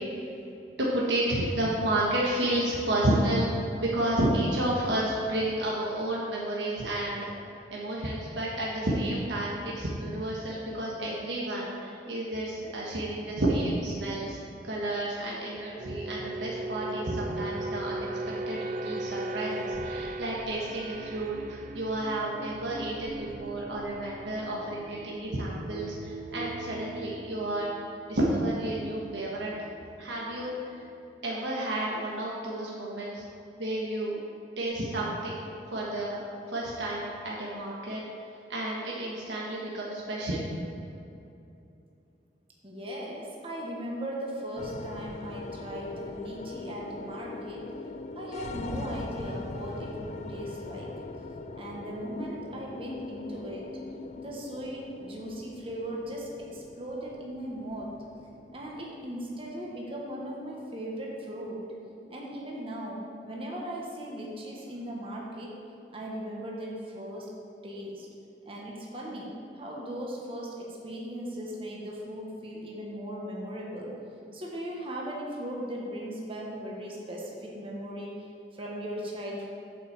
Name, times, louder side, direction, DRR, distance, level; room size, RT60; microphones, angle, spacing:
voice 1, 0.8-3.5 3.8-7.3 7.7-14.4 14.6-18.1 18.5-27.7 28.1-29.5 30.0-30.5 31.2-33.2 33.6-34.2 34.6-35.4 35.7-36.2 36.5-38.0 38.5-40.5, right 1 dB, 85° right, -4 dB, 1.4 m, -31 dB
sound 1, 15.8-30.4 30.7-31.0, right 2 dB, 45° right, 0.5 m, -39 dB
voice 2, 42.6-47.6 48.1-50.9 51.5-53.7 54.2-57.9 58.5-61.6 62.1-65.5 65.9-67.3 67.6-68.1 68.4-73.9 74.3-78.1 78.5-79.5, equal, 30° right, -3 dB, 1.4 m, -38 dB
sound 2, 44.6-63.0, left 3 dB, 40° left, 0.4 m, -42 dB
7.9 x 5.6 x 7.2 m, 2.8 s
head